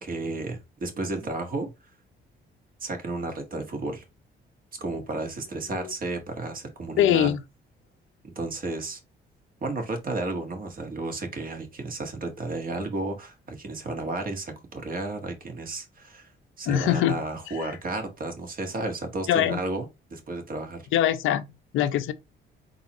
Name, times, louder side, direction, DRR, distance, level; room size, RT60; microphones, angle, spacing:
voice 1, 0.0-1.7 2.8-4.0 4.8-7.3 8.2-9.0 9.6-16.3 16.6-20.9, right 2 dB, 45° right, 1.6 m, -32 dB
voice 2, 7.0-7.4 16.7-17.1 19.3-19.6 20.9-21.5 21.7-22.1, left 11 dB, 85° left, 0.6 m, -22 dB
4.3 x 3.9 x 2.9 m
cardioid pair, 90°, 20 cm